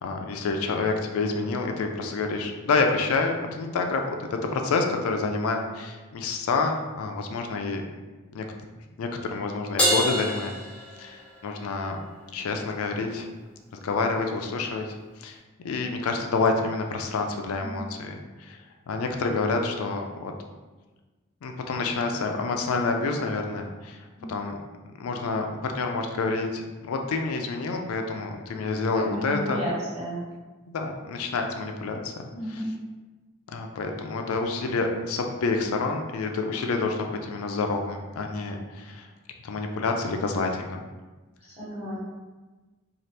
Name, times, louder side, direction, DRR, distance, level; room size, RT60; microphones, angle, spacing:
voice 1, 0.0-7.8 8.3-8.4 9.0-10.6 11.0-12.0 12.3-13.3 13.7-14.8 15.2-15.4 15.6-18.6 18.9-20.3 21.4-24.0 24.3-24.5 25.0-29.6 30.7-32.1 32.5-32.6 33.5-39.1 39.4-40.8, left 3 dB, 90° left, 4 dB, 0.4 m, -28 dB
Crash cymbal, 9.8-11.5, equal, 5° left, 0.7 m, -26 dB
voice 2, 28.9-30.2 32.3-32.7 41.4-42.0, equal, 30° right, -9 dB, 1.4 m, -33 dB
2.8 x 2.4 x 3.2 m, 1.2 s
head